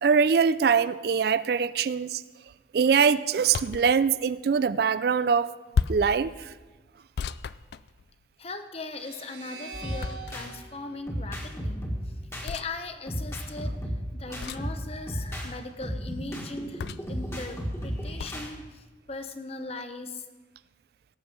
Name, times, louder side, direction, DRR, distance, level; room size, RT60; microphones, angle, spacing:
voice 1, 0.0-2.2 2.7-5.5 5.9-6.5, right 6 dB, 55° right, 0.3 m, -23 dB
sound 1, 3.5-3.9 5.7-6.2 7.2-8.3 10.0-10.6 12.4-12.7 14.4-14.8 16.8-17.2 18.2-18.4, left 5 dB, 60° left, 0.3 m, -32 dB
voice 2, 8.4-12.1 12.4-20.3, left 3 dB, 30° left, 0.8 m, -39 dB
sound 2, 8.9-12.2, right 3 dB, 75° right, 3.9 m, -45 dB
sound 3, 9.7-10.5 11.1-12.5 13.1-15.5 15.8-18.5, equal, 15° left, 1.6 m, -34 dB
17.5 x 8.0 x 5.2 m
head